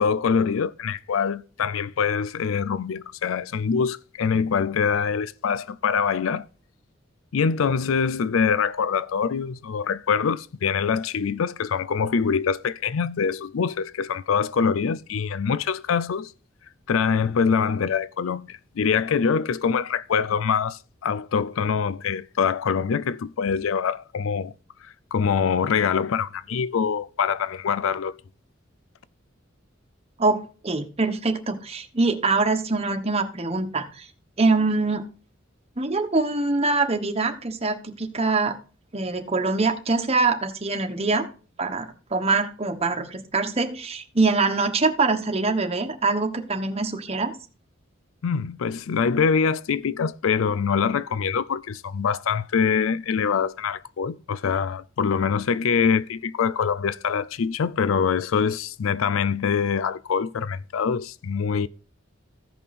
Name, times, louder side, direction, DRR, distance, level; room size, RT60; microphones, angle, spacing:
voice 1, 0.0-6.5 7.3-16.3 16.9-24.5 24.8-28.1 48.2-61.7, left 6 dB, 85° left, 0.4 m, -24 dB
voice 2, 30.2-34.1 34.4-35.0 35.8-38.6 38.9-41.3 41.6-47.3, right 3 dB, 30° right, 1.2 m, -24 dB
15.0 x 5.4 x 4.2 m
head